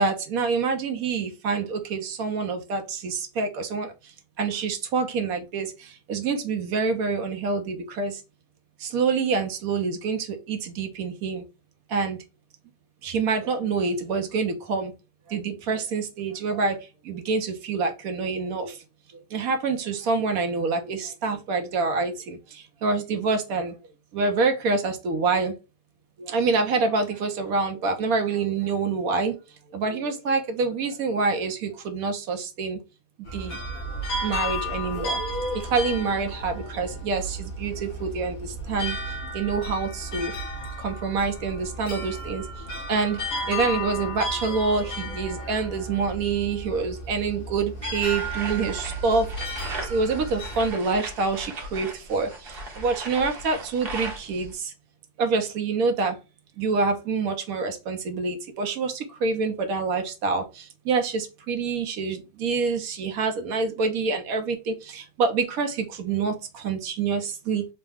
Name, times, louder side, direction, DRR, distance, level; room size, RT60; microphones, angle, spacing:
voice 1, 0.0-3.9 4.4-8.2 8.8-11.4 11.9-12.2 13.0-14.9 15.3-16.8 17.0-18.8 19.3-23.7 24.1-25.5 26.2-29.4 29.7-32.8 33.3-33.6 34.2-35.2 35.5-39.0 39.3-40.3 40.8-42.4 42.9-49.6 49.9-54.7 55.2-56.2 56.6-67.7, right 4 dB, 70° right, 1.2 m, -26 dB
sound 1, 33.3-50.7, equal, 65° left, 1.7 m, -33 dB
sound 2, 47.8-54.5, right 2 dB, 45° right, 1.1 m, -38 dB
4.0 x 2.2 x 3.4 m
omnidirectional pair, 1.6 m